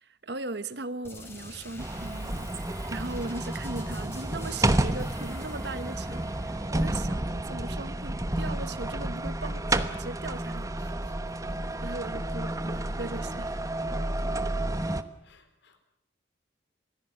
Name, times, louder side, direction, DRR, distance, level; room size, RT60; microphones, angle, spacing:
voice 1, 0.0-10.9 11.8-13.6, right 2 dB, 60° right, 1.1 m, -39 dB
sound 1, 1.0-8.6, left 1 dB, 15° left, 3.8 m, -46 dB
sound 2, 1.8-15.0, right 1 dB, 20° right, 1.0 m, -31 dB
voice 2, 10.8-11.3 11.7-11.8 14.0-14.6 15.2-15.8, left 6 dB, 70° left, 3.9 m, -64 dB
26.5 x 19.0 x 7.8 m
head